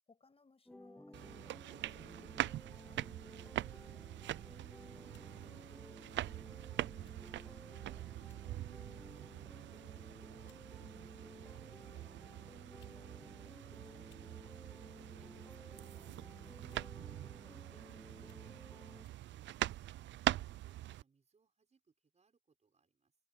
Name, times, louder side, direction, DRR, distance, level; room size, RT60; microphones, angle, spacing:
voice 1, 0.1-3.0 10.8-11.1 16.1-16.8, left 4 dB, 30° left, 6.2 m, -65 dB
sound 1, 0.7-19.1, left 1 dB, 5° left, 0.7 m, -56 dB
sound 2, 1.1-21.0, right 14 dB, 70° right, 0.5 m, -43 dB
voice 2, 3.7-4.1 10.5-15.3 18.3-20.1 20.5-23.1, right 5 dB, 35° right, 6.7 m, -73 dB
sound 3, 5.1-5.3 6.2-6.4 7.0-7.2 7.5-7.6 8.2-8.5 9.0-9.3 10.0-10.1 10.5-10.7 11.7-11.8 12.6-13.0 13.3-13.4 13.9-14.3 15.5-15.8 16.6-17.0 17.6-17.7 18.2-18.5 19.0-19.2, left 11 dB, 75° left, 7.2 m, -73 dB
cardioid pair, 90°, 20 cm